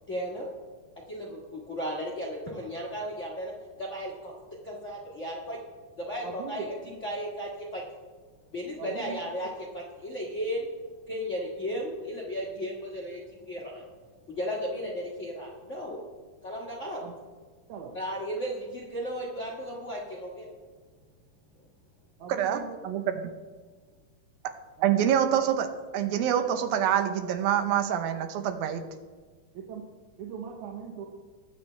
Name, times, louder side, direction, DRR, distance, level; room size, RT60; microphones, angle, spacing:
voice 1, 0.1-0.5 1.1-3.5 3.8-4.3 4.6-5.6 6.0-7.8 8.5-10.7 11.1-13.9 14.3-16.0 16.4-17.0 17.9-20.5, equal, 55° left, -4 dB, 0.8 m, -35 dB
voice 2, 8.8-9.2 17.0-17.1 17.7-17.9 22.2-22.8 24.8-24.9 29.7-29.8 30.2-31.1, right 7 dB, 70° right, 0 dB, 2.1 m, -39 dB
voice 3, 22.3-23.3 24.8-25.7 25.9-28.8, right 9 dB, 85° right, 8 dB, 2.7 m, -26 dB
21.0 x 7.4 x 3.3 m, 1.5 s
omnidirectional pair, 4.1 m